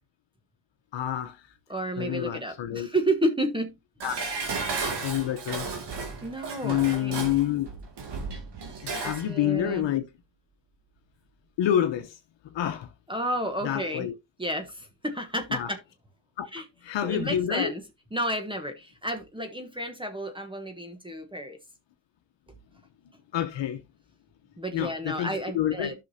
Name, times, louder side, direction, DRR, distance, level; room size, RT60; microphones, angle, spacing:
voice 1, 0.9-1.5 2.0-2.9 4.0-4.1 4.7-5.7 6.6-7.7 8.8-10.0 11.6-12.2 12.4-12.9 13.6-14.1 15.5-15.7 16.4-17.7 23.3-23.8 24.7-25.9, left 11 dB, 80° left, 1.0 m, -28 dB
voice 2, 1.7-3.7 4.3-4.4 6.2-7.1 9.0-9.9 13.1-14.1 14.4-15.8 16.5-16.6 17.0-17.8 18.1-21.6 24.6-25.9, right 1 dB, 10° right, 1.2 m, -31 dB
Dishes pots and pans, 4.0-9.3 9.6-9.7, right 4 dB, 65° right, 2.4 m, -34 dB
11.5 x 6.1 x 2.7 m
cardioid pair, 95°, 44 cm